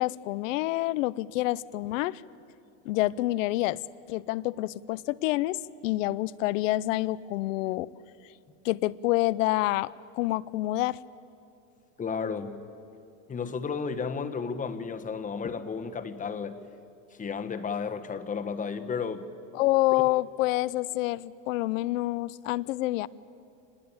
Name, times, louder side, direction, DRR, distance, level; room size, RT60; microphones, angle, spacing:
voice 1, 0.0-2.2 2.9-3.8 4.1-7.9 8.6-11.0 19.5-23.1, left 17 dB, 80° left, 20 dB, 0.7 m, -27 dB
voice 2, 12.0-12.6 13.3-16.6 17.2-19.3 19.9-20.0, left 5 dB, 20° left, 8 dB, 1.3 m, -33 dB
25.5 x 20.5 x 8.8 m, 2.6 s
supercardioid pair, 130°, 39 cm